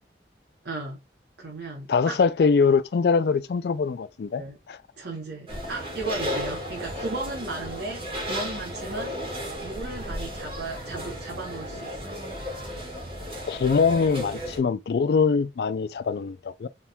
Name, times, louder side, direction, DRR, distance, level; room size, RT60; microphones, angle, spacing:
voice 1, 0.6-1.0 1.4-2.2 4.3-4.6 5.0-9.2 9.6-12.2, right 3 dB, 85° right, 1.1 m, -35 dB
voice 2, 1.9-4.8 13.5-16.7, left 5 dB, 65° left, 0.4 m, -23 dB
sound 1, 5.5-14.6, equal, 30° right, 2.3 m, -34 dB
4.3 x 3.5 x 2.3 m
head